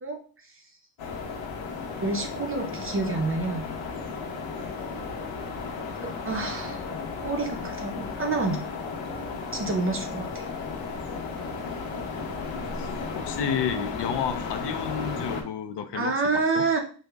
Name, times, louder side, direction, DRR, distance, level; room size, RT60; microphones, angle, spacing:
sound 1, 1.0-15.4, left 4 dB, 85° left, 1.0 m, -34 dB
voice 1, 2.0-3.7 6.0-6.9 7.2-8.7 9.5-10.4 15.9-16.8, right 3 dB, 30° right, 4 dB, 0.6 m, -28 dB
voice 2, 13.2-16.6, left 7 dB, 60° left, 8 dB, 0.5 m, -31 dB
5.4 x 2.1 x 3.3 m, 0.39 s
wide cardioid pair, 170°, 46 cm